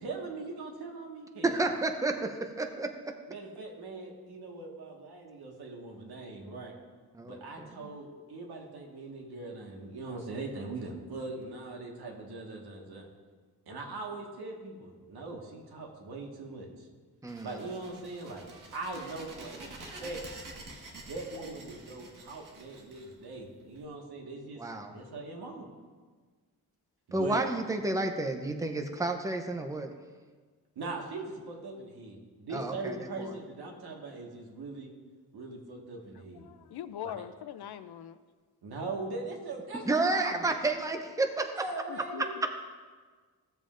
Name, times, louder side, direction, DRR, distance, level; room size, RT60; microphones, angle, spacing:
voice 1, 0.0-1.6 3.3-6.7 7.2-13.1 13.7-16.9 17.4-18.5 18.7-20.2 21.0-24.6 24.9-25.7 27.1-27.4 30.8-34.9 35.3-36.5 37.2-37.3 38.6-40.5 41.5-42.3, right 3 dB, 85° right, 0 dB, 1.7 m, -41 dB
voice 2, 1.4-2.9 7.1-7.9 17.2-17.6 24.6-24.9 27.1-29.9 32.5-32.9 33.2-33.3 39.9-41.5, right 2 dB, 10° right, 5 dB, 0.6 m, -31 dB
sound 1, 17.3-23.8, right 2 dB, 55° right, 1.6 m, -48 dB
voice 3, 36.4-38.2 41.9-42.5, left 11 dB, 85° left, 12 dB, 0.6 m, -42 dB
16.0 x 7.4 x 2.5 m, 1.5 s
wide cardioid pair, 140°, 37 cm